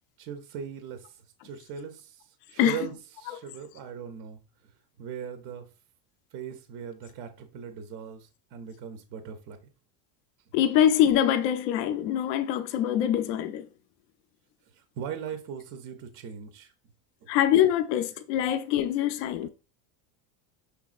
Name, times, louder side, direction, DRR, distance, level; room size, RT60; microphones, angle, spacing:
voice 1, 0.2-1.1 1.4-4.4 5.0-5.7 6.3-9.6 14.8-16.7, right 8 dB, 35° right, 0.4 m, -39 dB
voice 2, 10.5-13.6 17.3-19.5, left 10 dB, 80° left, 0.6 m, -24 dB
6.1 x 3.4 x 2.3 m
cardioid pair, 160°, 48 cm